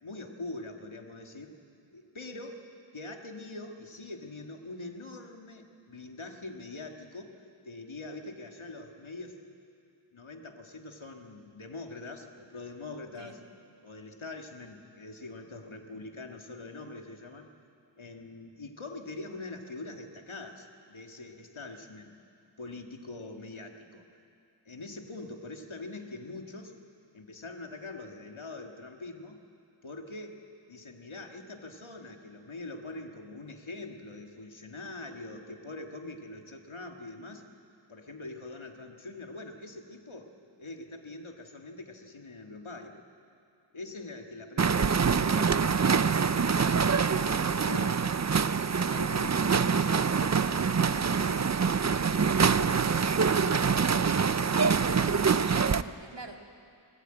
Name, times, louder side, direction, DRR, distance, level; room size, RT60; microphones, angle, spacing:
voice 1, 0.0-1.6 1.9-7.4 7.7-9.4 10.1-13.4 13.8-17.5 18.0-22.1 22.6-24.1 24.7-26.7 27.1-29.4 29.8-30.4 30.7-37.4 37.9-43.0 43.7-45.6 46.5-48.0 48.4-51.5 51.8-53.8, left 2 dB, 75° left, 3 dB, 2.0 m, -43 dB
sound 1, 44.6-55.8, right 6 dB, 35° right, 0.5 m, -25 dB
voice 2, 54.5-56.3, right 3 dB, 60° right, 3 dB, 2.1 m, -44 dB
21.0 x 17.0 x 9.1 m, 2.5 s
wide cardioid pair, 50°, 48 cm